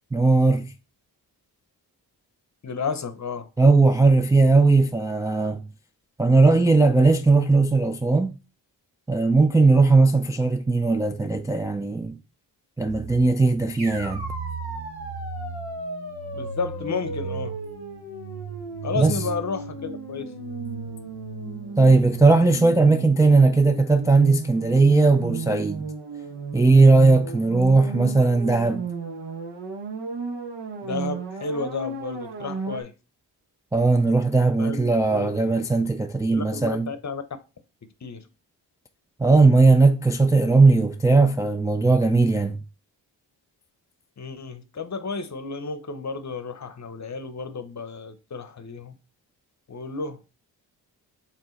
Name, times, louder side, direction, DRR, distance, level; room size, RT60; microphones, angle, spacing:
voice 1, 0.1-0.7 3.6-5.6 6.2-8.3 9.1-12.1 12.8-14.3 19.0-19.2 21.8-25.8 26.5-28.8 33.7-36.9 39.2-42.6, right 3 dB, 10° right, 0.3 m, -18 dB
voice 2, 2.6-3.5 16.3-17.6 18.8-20.2 30.8-32.9 34.6-35.3 36.3-37.2 38.0-38.3 44.2-49.0 49.7-50.2, left 4 dB, 40° left, 0.8 m, -32 dB
sound 1, 13.5-32.8, right 4 dB, 70° right, 0.9 m, -35 dB
sound 2, 13.8-23.7, right 1 dB, 85° right, 1.7 m, -37 dB
4.4 x 3.6 x 3.1 m
supercardioid pair, 40°, 45 cm